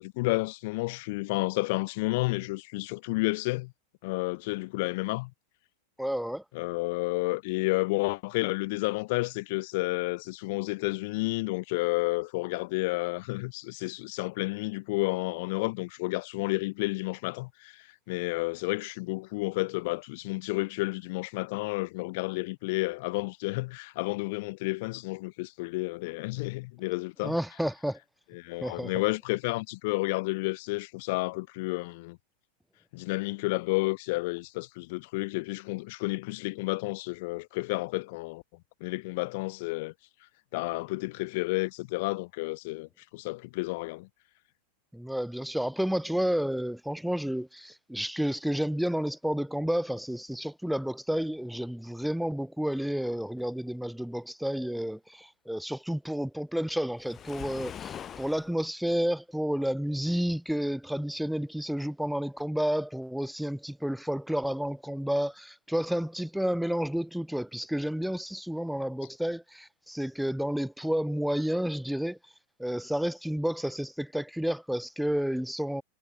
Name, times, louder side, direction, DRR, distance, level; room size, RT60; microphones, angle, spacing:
voice 1, 0.0-3.7 4.0-5.3 6.5-27.3 28.3-32.2 32.9-38.4 38.8-39.9 40.5-44.1, left 24 dB, 60° left, 0.7 m, -31 dB
voice 2, 6.0-6.4 27.2-28.0 28.6-29.0 44.9-72.2 72.6-75.8, equal, ahead, 1.5 m, -31 dB
Waves surf, 57.0-58.5, left 9 dB, 25° left, 3.8 m, -42 dB
supercardioid pair, 130°, 0 cm